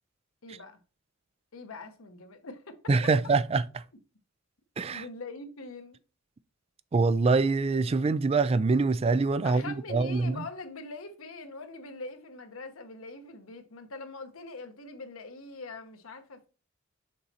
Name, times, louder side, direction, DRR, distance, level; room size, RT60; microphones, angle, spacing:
voice 1, 0.4-0.8 1.5-2.9 4.9-6.0 9.4-16.5, left 3 dB, 85° left, 1.0 m, -43 dB
voice 2, 2.9-3.8 4.8-5.0 6.9-10.5, right 3 dB, 30° right, 0.3 m, -25 dB
6.5 x 4.1 x 4.2 m
head